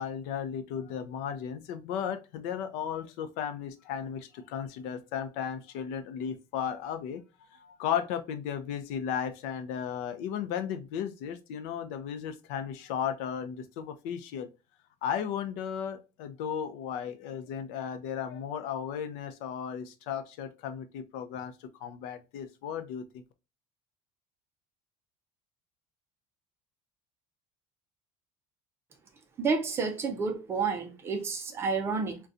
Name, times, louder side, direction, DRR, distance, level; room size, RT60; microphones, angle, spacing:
voice 1, 0.0-14.5 15.0-23.2, left 8 dB, 65° left, 0.5 m, -35 dB
voice 2, 29.4-32.2, right 4 dB, 20° right, 0.5 m, -30 dB
3.7 x 2.2 x 2.6 m
cardioid pair, 180°, 13 cm